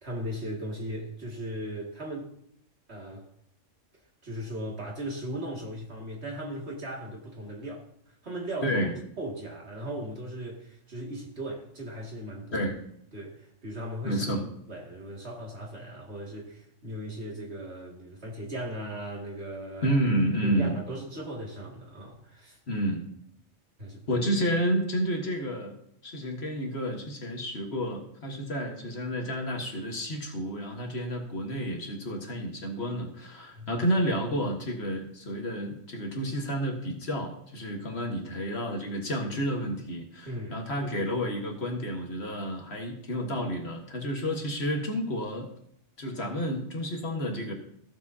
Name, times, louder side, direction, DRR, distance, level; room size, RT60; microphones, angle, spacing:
voice 1, 0.0-2.3 2.9-3.3 4.2-7.9 8.2-8.8 9.2-12.7 13.1-14.2 14.7-20.0 20.4-22.6 23.8-24.2 33.6-33.8 40.2-40.6, right 1 dB, 55° right, 2.5 m, -37 dB
voice 2, 8.6-8.9 12.5-12.8 14.0-14.5 19.8-20.8 22.7-23.1 24.1-25.7 26.0-45.5 46.0-47.5, equal, 55° left, 1.8 m, -30 dB
15.5 x 7.3 x 2.8 m
omnidirectional pair, 1.3 m